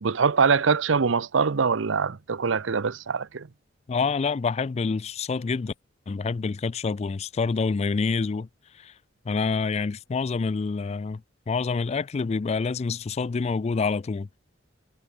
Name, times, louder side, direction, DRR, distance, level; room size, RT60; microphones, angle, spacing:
voice 1, 0.0-3.5, right 5 dB, 75° right, 0.7 m, -23 dB
voice 2, 3.9-5.7 6.1-8.5 8.8-8.9 9.3-11.2 11.5-14.3, left 4 dB, 35° left, 0.4 m, -27 dB
head